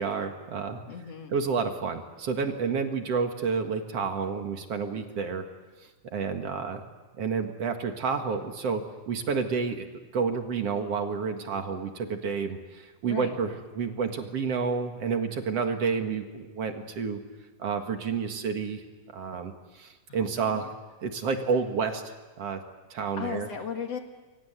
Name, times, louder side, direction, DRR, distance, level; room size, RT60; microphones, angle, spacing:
voice 1, 0.0-0.8 1.3-5.5 6.1-6.8 7.2-9.9 10.1-17.2 17.6-18.8 19.1-20.7 21.0-22.6 22.9-23.5, right 5 dB, 55° right, 5 dB, 2.7 m, -30 dB
voice 2, 0.9-1.4 13.0-13.4 20.1-20.7 23.2-24.0, left 7 dB, 60° left, 4 dB, 2.7 m, -36 dB
28.5 x 23.5 x 8.1 m, 1.3 s
omnidirectional pair, 3.4 m